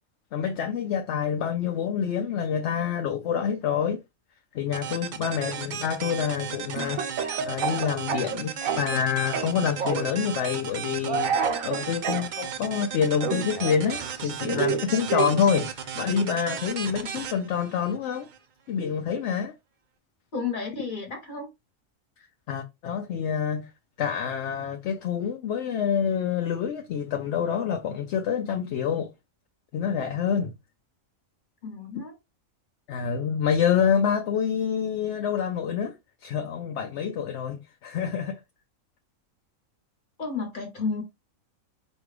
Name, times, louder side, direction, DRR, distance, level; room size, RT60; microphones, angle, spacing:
voice 1, 0.3-4.0 4.5-7.0 7.4-18.3 18.7-19.5 22.5-23.7 24.0-29.1 29.7-30.5 32.9-36.0 36.2-38.4, left 7 dB, 65° left, 0.8 m, -27 dB
sound 1, 4.7-18.4, right 8 dB, 65° right, 0.4 m, -36 dB
Speech / Cough, 6.8-9.0 9.3-10.1 11.0-12.3 13.2-15.5, right 6 dB, 80° right, 1.1 m, -29 dB
voice 2, 20.3-21.5 31.6-32.2 40.2-41.0, left 4 dB, 40° left, 1.2 m, -32 dB
5.1 x 2.4 x 3.2 m
omnidirectional pair, 1.4 m